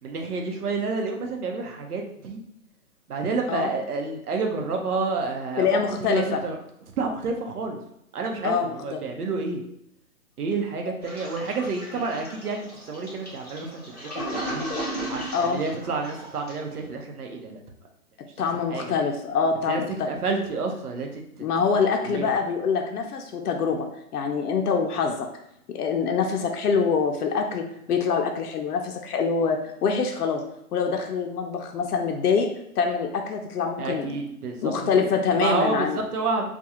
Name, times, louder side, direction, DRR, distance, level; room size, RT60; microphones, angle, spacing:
voice 1, 0.0-2.4 3.1-6.6 7.0-7.8 8.1-9.6 10.4-14.7 15.1-17.6 18.7-18.9 19.7-21.5 22.0-22.3 33.8-34.9 35.4-36.5, right 4 dB, 80° right, 2 dB, 0.7 m, -29 dB
voice 2, 5.6-6.4 8.4-9.0 15.3-15.6 18.4-20.1 21.4-23.9 24.1-25.3 25.7-30.4 30.7-32.5 32.8-34.2 34.6-36.0, left 5 dB, 90° left, 3 dB, 0.5 m, -25 dB
Toilet flush, 11.0-16.8, equal, 30° left, 0.5 m, -35 dB
2.4 x 2.3 x 2.8 m, 0.76 s
hypercardioid pair, 175°, 45 cm